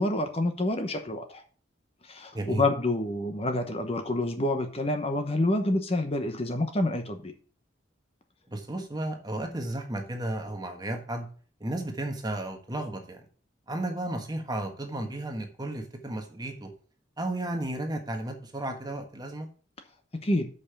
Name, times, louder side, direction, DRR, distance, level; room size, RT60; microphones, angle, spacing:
voice 1, 0.0-1.4 2.0-7.3 20.1-20.5, left 1 dB, 30° left, 6 dB, 0.9 m, -28 dB
voice 2, 2.3-2.6 8.5-11.3 11.6-13.3 13.7-16.7 17.2-19.5, right 1 dB, 20° right, 4 dB, 1.4 m, -33 dB
6.8 x 5.5 x 6.8 m, 0.42 s
head